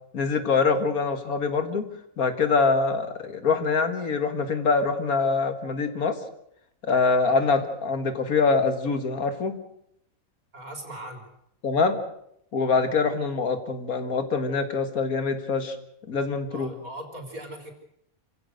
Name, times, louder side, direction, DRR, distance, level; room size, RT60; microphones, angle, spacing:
voice 1, 0.1-1.9 2.2-6.2 6.8-9.6 11.6-12.0 12.5-15.8 16.1-16.7, left 4 dB, 80° left, 8 dB, 2.1 m, -24 dB
voice 2, 10.5-11.3 16.5-17.7, right 1 dB, 75° right, 3 dB, 4.3 m, -39 dB
27.0 x 16.5 x 6.5 m, 0.75 s
omnidirectional pair, 1.5 m